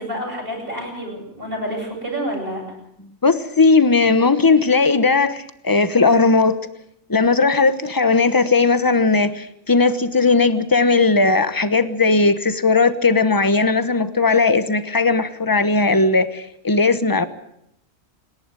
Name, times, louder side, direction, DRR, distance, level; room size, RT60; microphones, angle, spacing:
voice 1, 0.0-2.6, equal, 40° right, -2 dB, 8.3 m, -28 dB
voice 2, 3.2-6.6 7.1-17.2, left 3 dB, 15° left, 12 dB, 1.0 m, -17 dB
27.0 x 11.0 x 9.8 m, 0.78 s
omnidirectional pair, 1.4 m